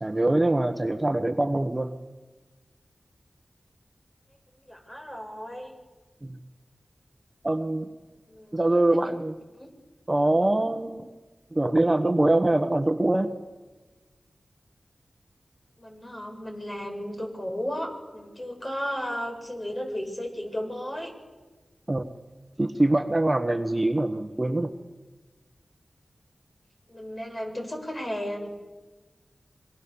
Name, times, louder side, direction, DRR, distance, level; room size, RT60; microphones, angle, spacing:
voice 1, 0.0-1.9 6.2-6.4 7.4-7.9 8.5-9.3 10.1-11.1 11.5-13.3 21.9-22.1 22.6-24.7, right 2 dB, 30° right, 7 dB, 1.4 m, -23 dB
voice 2, 4.7-5.7 8.3-8.5 8.9-9.1 9.6-9.7 15.8-21.1 26.9-28.5, equal, 30° left, 3 dB, 6.9 m, -34 dB
26.0 x 23.5 x 7.1 m, 1.3 s
cardioid pair, 45°, 0 cm